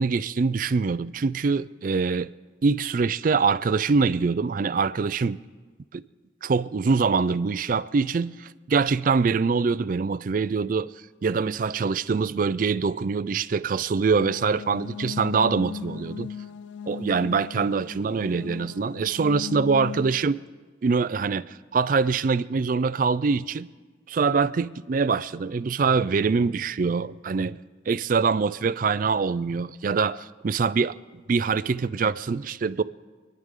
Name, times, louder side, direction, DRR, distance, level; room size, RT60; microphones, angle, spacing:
voice 1, 0.0-2.3 2.6-5.4 5.9-6.0 6.4-10.9 11.2-16.3 16.9-20.4 20.8-23.7 24.1-27.6 27.9-30.9 31.3-32.8, right 5 dB, 45° right, 0.3 m, -24 dB
sound 1, 14.1-20.1, left 8 dB, 65° left, 0.4 m, -37 dB
27.5 x 10.5 x 3.7 m
head